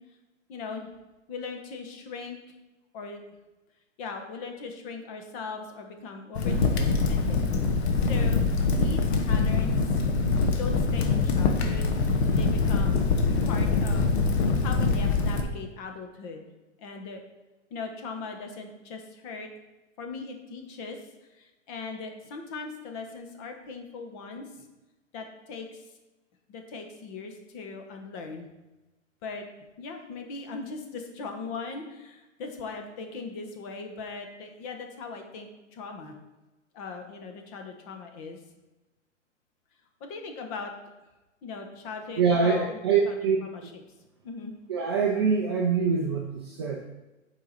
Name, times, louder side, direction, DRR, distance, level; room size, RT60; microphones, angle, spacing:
voice 1, 0.5-0.9 1.3-2.5 2.9-3.2 4.0-7.4 7.9-10.0 10.6-13.1 13.4-16.5 16.8-17.2 17.7-19.5 20.0-21.0 21.3-24.7 25.1-25.8 26.5-28.5 29.2-29.5 29.8-36.2 36.7-38.4 40.0-40.7 41.4-42.8 43.0-43.2 43.4-43.8 44.2-44.5, left 4 dB, 25° left, 4 dB, 1.1 m, -39 dB
Crackle, 6.4-15.4, left 4 dB, 55° left, 1.2 m, -24 dB
voice 2, 42.2-43.4 43.6-43.7 44.7-46.9, right 5 dB, 20° right, 0 dB, 0.4 m, -24 dB
8.5 x 5.0 x 4.1 m, 1.1 s
hypercardioid pair, 145°, 39 cm